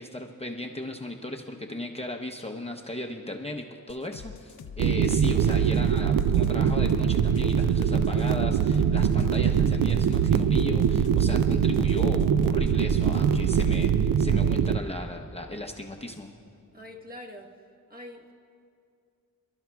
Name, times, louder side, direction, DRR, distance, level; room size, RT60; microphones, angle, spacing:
voice 1, 0.0-16.3, left 1 dB, 15° left, 2 dB, 0.7 m, -36 dB
sound 1, 3.9-13.9, left 7 dB, 85° left, 0.7 m, -44 dB
sound 2, 4.8-14.8, right 8 dB, 65° right, 0.5 m, -23 dB
voice 2, 16.7-17.5 17.9-18.3, left 1 dB, 25° right, 1 dB, 1.3 m, -43 dB
29.0 x 12.0 x 2.3 m, 2.4 s
wide cardioid pair, 85°, 36 cm